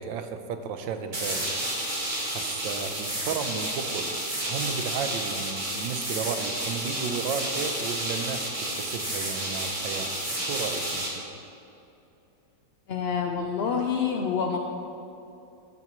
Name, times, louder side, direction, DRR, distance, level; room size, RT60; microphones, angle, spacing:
voice 1, 0.0-1.5 2.3-4.1 4.5-10.1 10.5-11.0, right 6 dB, 90° right, 8 dB, 1.5 m, -33 dB
sound 1, 1.1-11.1, right 1 dB, 25° right, 1.9 m, -31 dB
voice 2, 12.9-14.6, left 6 dB, 65° left, 2 dB, 0.6 m, -27 dB
13.5 x 12.5 x 3.1 m, 2.8 s
omnidirectional pair, 2.0 m